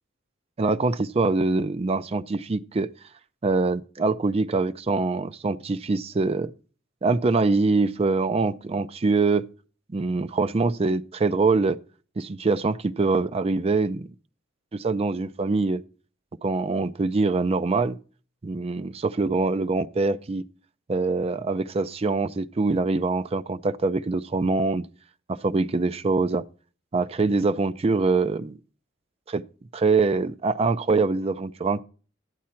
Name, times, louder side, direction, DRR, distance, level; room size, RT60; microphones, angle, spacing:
voice 1, 0.6-2.9 3.4-6.5 7.0-9.4 9.9-11.8 12.2-14.1 14.7-15.8 16.4-18.0 18.4-20.4 20.9-24.9 25.3-26.4 26.9-28.6 29.3-29.4 29.7-31.8, right 3 dB, 30° right, 0.4 m, -24 dB
11.5 x 8.5 x 4.4 m
head